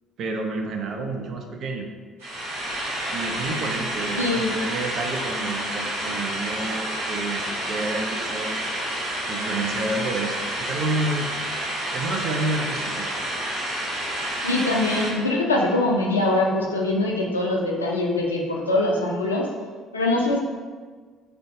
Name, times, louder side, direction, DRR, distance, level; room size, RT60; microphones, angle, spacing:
voice 1, 0.2-1.9 3.1-8.7 9.3-11.3 11.9-13.1, right 2 dB, 55° right, 3 dB, 0.4 m, -29 dB
sound 1, 2.2-15.1, right 1 dB, 80° right, 0.9 m, -29 dB
voice 2, 4.2-4.5 14.4-19.5 19.9-20.4, left 2 dB, 90° left, -1 dB, 0.3 m, -23 dB
2.5 x 2.2 x 3.6 m, 1.5 s
hypercardioid pair, 50°, 0 cm